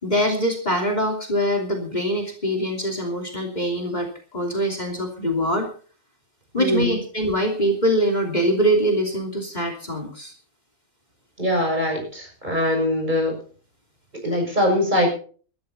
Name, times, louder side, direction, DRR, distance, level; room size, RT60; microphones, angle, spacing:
voice 1, 0.0-5.7 6.5-10.3, equal, 30° left, 3 dB, 3.2 m, -23 dB
voice 2, 6.6-7.0 11.4-13.3 14.2-15.1, left 1 dB, 30° right, 1 dB, 6.8 m, -22 dB
19.0 x 13.0 x 4.2 m, 0.42 s
omnidirectional pair, 1.5 m